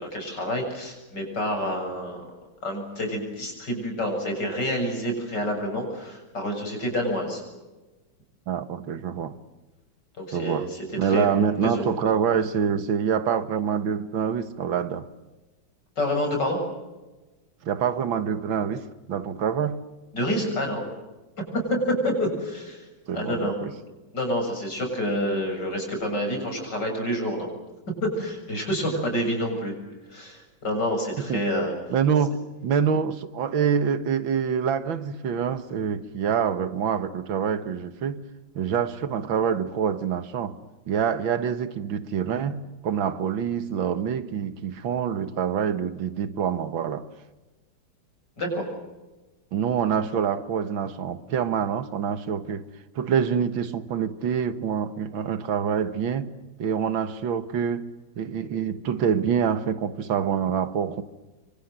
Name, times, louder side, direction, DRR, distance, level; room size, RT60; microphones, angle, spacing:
voice 1, 0.0-2.2 2.6-7.4 10.2-11.3 11.6-11.9 16.0-16.6 20.1-20.9 21.5-22.9 23.1-23.6 24.1-27.5 28.0-29.7 30.1-31.7 48.4-48.7, equal, 60° left, 8.0 m, -28 dB
voice 2, 8.5-9.4 10.3-10.7 10.9-15.1 17.6-19.8 23.1-23.7 28.9-29.1 31.2-31.4 31.9-38.2 38.6-40.6 40.9-47.1 49.5-52.7 53.0-56.3 56.6-61.0, right 7 dB, 85° right, 2.1 m, -26 dB
27.0 x 25.0 x 7.9 m
omnidirectional pair, 2.1 m